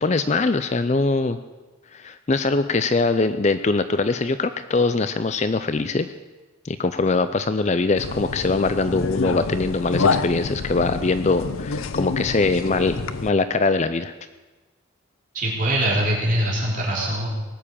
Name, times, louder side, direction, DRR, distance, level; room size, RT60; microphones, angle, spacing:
voice 1, 0.0-1.4 1.9-6.1 6.6-14.1, left 3 dB, 35° left, 11 dB, 0.5 m, -22 dB
sound 1, 8.0-13.3, left 4 dB, 90° left, 0.7 m, -27 dB
voice 2, 15.3-17.3, right 1 dB, 40° right, -4 dB, 3.8 m, -23 dB
18.5 x 7.3 x 8.7 m, 1.2 s
head